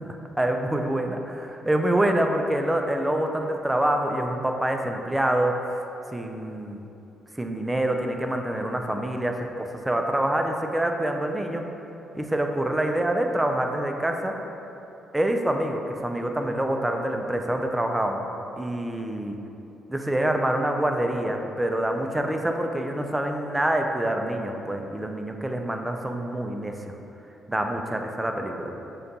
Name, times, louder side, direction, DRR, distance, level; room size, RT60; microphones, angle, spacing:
voice 1, 0.4-5.8 6.1-6.8 7.4-11.6 12.1-14.3 15.1-18.2 18.6-19.4 19.9-26.7 27.5-28.7, right 1 dB, 10° right, 3 dB, 0.3 m, -26 dB
6.3 x 2.2 x 2.7 m, 2.9 s
cardioid pair, 90°, 0 cm